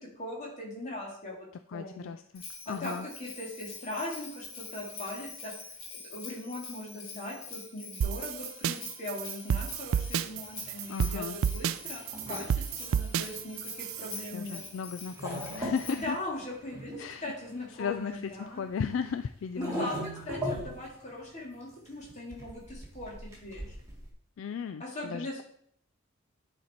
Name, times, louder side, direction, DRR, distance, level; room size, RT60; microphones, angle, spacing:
voice 1, 0.2-2.1 2.7-5.5 5.9-14.6 15.9-18.6 19.6-23.8 24.8-25.4, left 1 dB, 35° left, -2 dB, 2.4 m, -39 dB
voice 2, 1.7-3.1 10.9-11.4 14.3-16.2 17.0-17.3 17.7-19.9 24.4-25.4, left 6 dB, 65° left, 10 dB, 0.3 m, -35 dB
Bell, 2.3-16.2, left 4 dB, 85° left, 1.9 m, -45 dB
sound 1, 8.0-14.4, right 8 dB, 70° right, 0.3 m, -31 dB
sound 2, 9.7-24.1, equal, 15° right, 1.7 m, -43 dB
10.0 x 4.3 x 4.4 m, 0.67 s
head